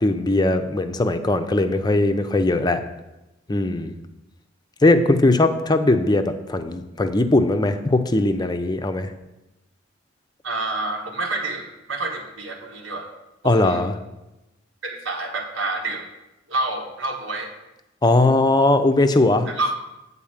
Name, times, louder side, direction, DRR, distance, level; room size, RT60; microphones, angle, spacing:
voice 1, 0.0-2.8 3.5-3.9 4.8-9.1 13.4-13.9 18.0-19.5, left 2 dB, 20° left, 8 dB, 0.5 m, -19 dB
voice 2, 10.4-13.1 13.4-13.8 14.8-16.1 16.5-17.5 19.5-19.7, right 2 dB, 80° right, 2 dB, 1.5 m, -28 dB
8.8 x 4.1 x 7.2 m, 0.98 s
head